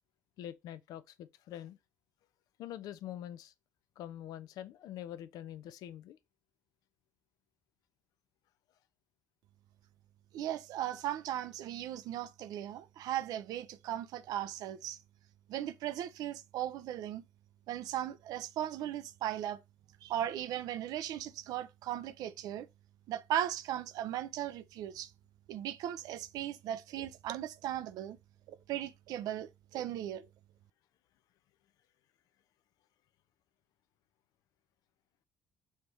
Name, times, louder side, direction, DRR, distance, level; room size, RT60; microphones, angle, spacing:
voice 1, 0.4-1.8 2.6-3.5 4.0-6.2, left 11 dB, 60° left, 0.4 m, -45 dB
voice 2, 10.3-15.0 15.5-17.2 17.7-19.6 20.0-22.7 23.1-25.1 25.5-28.2 28.5-30.3, right 12 dB, 60° right, 0.5 m, -37 dB
5.6 x 2.9 x 3.2 m
hypercardioid pair, 50°, 7 cm